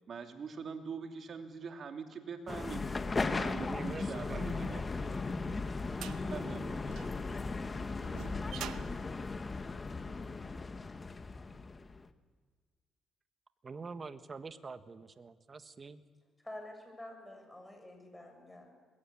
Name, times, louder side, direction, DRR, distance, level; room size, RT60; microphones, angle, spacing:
voice 1, 0.1-2.8 3.2-7.0, right 5 dB, 55° right, 5 dB, 3.0 m, -44 dB
sound 1, 2.5-12.1, left 3 dB, 30° left, 1.5 m, -37 dB
voice 2, 3.6-4.7 13.6-16.0, right 4 dB, 35° right, 11 dB, 1.5 m, -46 dB
sound 2, 5.0-10.3, right 11 dB, 85° right, 1.0 m, -48 dB
voice 3, 16.4-18.7, left 1 dB, 10° left, 3 dB, 7.6 m, -48 dB
26.5 x 21.5 x 8.8 m, 1.5 s
cardioid pair, 90°, 0 cm